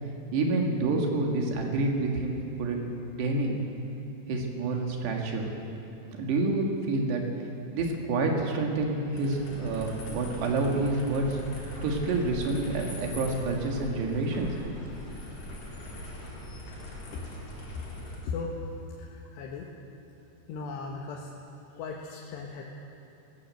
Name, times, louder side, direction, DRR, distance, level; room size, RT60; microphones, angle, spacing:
voice 1, 0.3-3.5 4.3-5.5 6.2-7.2 7.7-14.8, right 2 dB, 85° right, 1 dB, 4.3 m, -28 dB
sound 1, 9.1-18.2, left 1 dB, 55° left, 6.0 m, -43 dB
sound 2, 9.4-17.6, left 1 dB, 30° left, 6.2 m, -44 dB
voice 2, 19.0-19.7 20.5-21.3 21.7-22.6, left 4 dB, 85° left, -1 dB, 3.5 m, -37 dB
19.5 x 18.0 x 7.8 m, 2.9 s
omnidirectional pair, 4.7 m